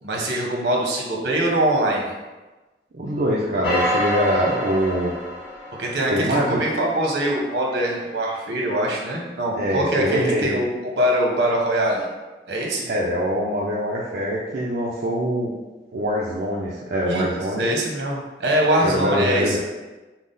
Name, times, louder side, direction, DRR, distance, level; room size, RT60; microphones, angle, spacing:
voice 1, 0.0-2.1 5.8-12.1 12.5-12.9 17.1-17.2 17.6-19.6, right 1 dB, 85° right, -1 dB, 1.0 m, -23 dB
voice 2, 2.9-5.1 6.1-6.6 9.5-10.5 12.9-15.5 15.9-17.7 18.8-19.6, equal, 60° right, -4 dB, 0.5 m, -23 dB
sound 1, 3.6-8.1 8.7-8.8, left 1 dB, 75° left, 1.0 m, -28 dB
5.9 x 2.1 x 3.8 m, 1.2 s
head